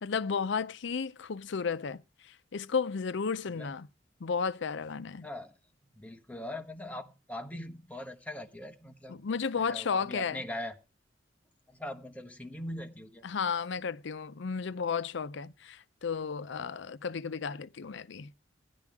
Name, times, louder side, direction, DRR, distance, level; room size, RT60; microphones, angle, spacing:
voice 1, 0.0-2.0 2.5-3.9 4.2-5.3 9.1-10.4 13.2-18.3, left 5 dB, 65° left, 0.5 m, -33 dB
voice 2, 5.2-5.6 5.9-9.3 9.6-10.7 11.7-13.2, left 1 dB, 10° left, 1.1 m, -41 dB
15.0 x 10.5 x 3.5 m
head